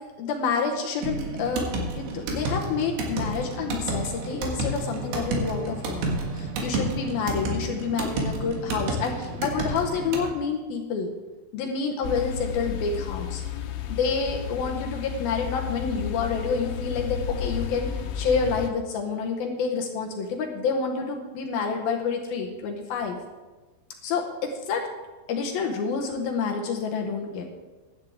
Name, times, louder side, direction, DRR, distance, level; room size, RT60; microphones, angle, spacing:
voice 1, 0.2-6.1 6.3-11.1 11.5-13.4 13.9-17.9 18.1-23.2 24.0-24.9 25.3-27.5, left 5 dB, 70° left, 2 dB, 2.5 m, -28 dB
sound 1, 1.0-10.3, right 2 dB, 75° right, 3.8 m, -30 dB
sound 2, 12.0-18.7, left 8 dB, 90° left, 3.2 m, -32 dB
15.5 x 11.5 x 3.5 m, 1.2 s
omnidirectional pair, 5.0 m